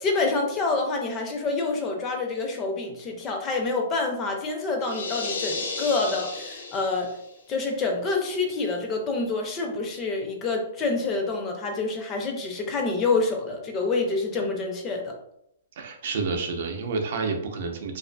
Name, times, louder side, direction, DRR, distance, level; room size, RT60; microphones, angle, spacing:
voice 1, 0.0-7.1 7.5-15.1, left 3 dB, 20° left, 2 dB, 0.4 m, -27 dB
sound 1, 4.8-7.3, left 3 dB, 85° left, 0.5 m, -33 dB
voice 2, 15.8-18.0, right 4 dB, 55° right, 4 dB, 0.4 m, -29 dB
2.5 x 2.4 x 2.2 m, 0.76 s
hypercardioid pair, 160°, 0 cm